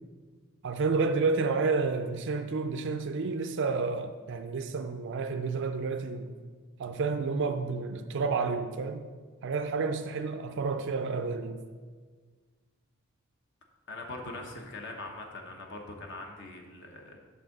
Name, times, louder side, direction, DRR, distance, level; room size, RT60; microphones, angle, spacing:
voice 1, 0.6-6.3 6.8-9.1 9.4-11.6, right 4 dB, 55° right, 0.4 m, -30 dB
voice 2, 13.9-17.2, left 2 dB, 55° left, 0.9 m, -42 dB
8.5 x 3.7 x 6.5 m
head